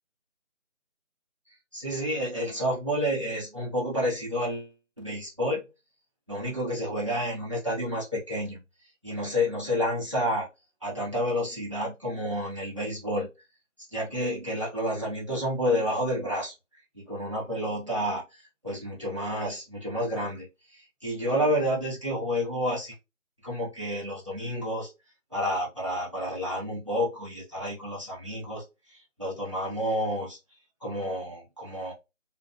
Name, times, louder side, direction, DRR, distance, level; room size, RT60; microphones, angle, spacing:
voice 1, 1.7-4.7 5.0-5.6 6.3-8.6 9.0-10.5 10.8-13.3 13.9-16.5 16.9-20.5 20.7-22.9 23.4-24.9 25.3-28.6 28.9-30.4 30.8-31.9, equal, 25° right, 1.1 m, -30 dB
3.9 x 2.4 x 2.4 m
figure-of-eight pair, 175°, 39 cm